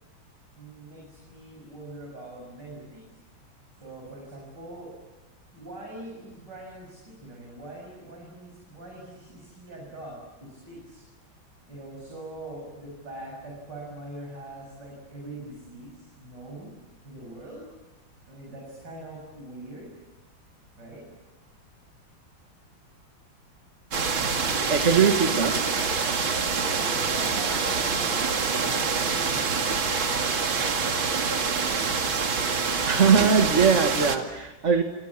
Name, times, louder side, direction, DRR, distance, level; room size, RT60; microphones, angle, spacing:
voice 1, 0.5-3.2 3.7-4.9 5.5-11.0 11.7-16.7 17.0-17.7 18.3-19.9 20.8-21.1 26.8-30.0 30.7-31.3, right 1 dB, 60° right, -2 dB, 8.0 m, -42 dB
sound 1, 23.9-34.2, right 5 dB, 75° right, 3.0 m, -26 dB
voice 2, 24.7-25.5 32.9-34.8, right 6 dB, 40° right, 5 dB, 1.9 m, -21 dB
29.0 x 27.0 x 7.4 m, 1.0 s
omnidirectional pair, 2.2 m